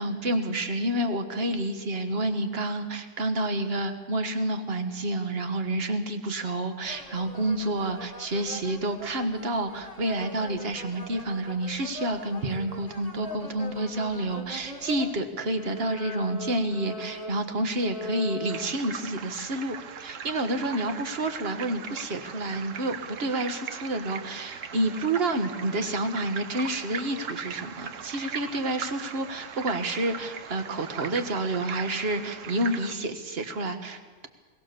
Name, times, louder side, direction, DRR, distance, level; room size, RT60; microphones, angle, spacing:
voice 1, 0.0-34.3, right 1 dB, 45° right, 7 dB, 1.6 m, -29 dB
sound 1, 6.8-15.2 15.5-18.7, left 1 dB, 25° left, 1.8 m, -41 dB
sound 2, 18.5-32.9, right 7 dB, 65° right, 1.1 m, -40 dB
22.0 x 18.5 x 6.9 m, 1.4 s
omnidirectional pair, 1.6 m